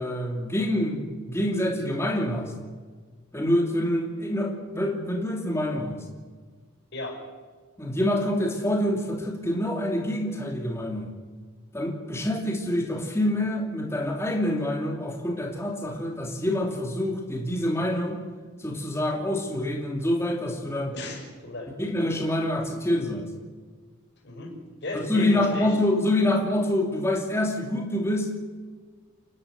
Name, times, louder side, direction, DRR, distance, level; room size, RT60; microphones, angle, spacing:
voice 1, 0.0-2.5 3.3-6.0 7.8-11.1 11.7-18.2 18.6-20.9 21.8-23.3 24.9-28.4, left 1 dB, 10° left, 1 dB, 2.7 m, -26 dB
voice 2, 20.9-21.7 24.2-24.6 24.8-25.7, left 2 dB, 50° left, 1 dB, 5.7 m, -34 dB
29.0 x 11.0 x 9.3 m, 1.5 s
head